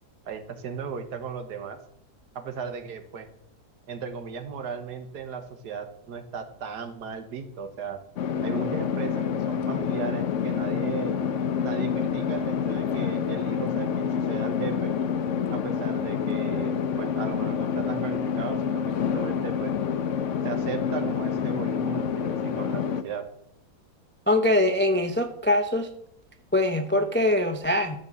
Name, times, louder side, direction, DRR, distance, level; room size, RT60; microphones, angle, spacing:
voice 1, 0.3-1.8 2.4-3.3 3.9-8.0 8.4-11.2 11.6-14.9 15.5-19.7 20.4-23.2, right 6 dB, 75° right, 8 dB, 1.7 m, -36 dB
sound 1, 8.2-23.0, left 7 dB, 60° left, 0.9 m, -27 dB
voice 2, 24.3-25.9 26.5-28.0, left 1 dB, 15° left, 6 dB, 0.3 m, -23 dB
13.0 x 5.2 x 7.4 m, 0.75 s
omnidirectional pair, 1.8 m